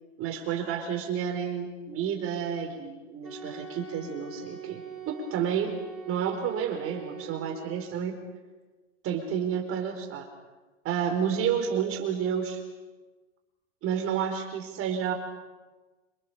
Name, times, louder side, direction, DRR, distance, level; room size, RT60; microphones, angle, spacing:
voice 1, 0.2-5.8 6.1-8.2 9.0-10.3 10.8-12.6 13.8-15.1, right 8 dB, 35° right, 4 dB, 4.7 m, -30 dB
Wind instrument woodwind instrument, 3.2-8.1, right 8 dB, ahead, 6.6 m, -43 dB
29.0 x 26.0 x 7.0 m, 1.2 s
supercardioid pair, 135°, 38 cm